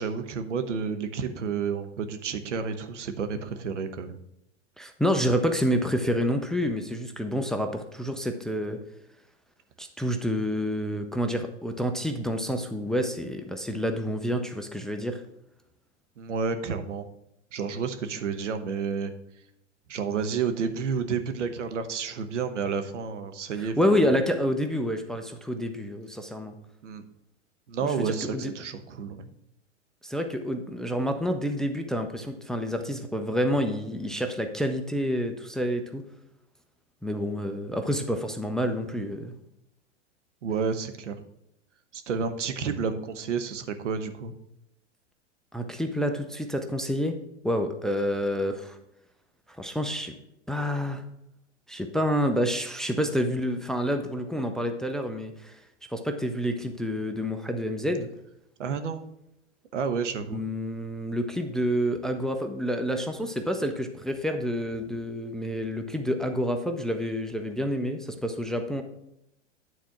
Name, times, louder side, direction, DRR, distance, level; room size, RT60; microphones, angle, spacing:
voice 1, 0.0-4.2 16.2-17.1 17.5-19.1 19.9-24.0 26.8-27.0 27.7-29.3 40.4-41.1 41.9-44.3 58.6-59.0 59.7-60.5, right 6 dB, 80° right, 8 dB, 1.1 m, -30 dB
voice 2, 4.8-8.8 9.8-15.2 23.6-26.6 27.8-28.5 30.0-36.0 37.0-39.3 45.5-47.2 47.4-48.8 49.6-50.1 50.5-51.0 51.7-55.6 55.9-58.1 60.3-68.8, equal, ahead, 5 dB, 0.6 m, -28 dB
9.3 x 4.3 x 5.9 m, 0.82 s
hypercardioid pair, 110°, 36 cm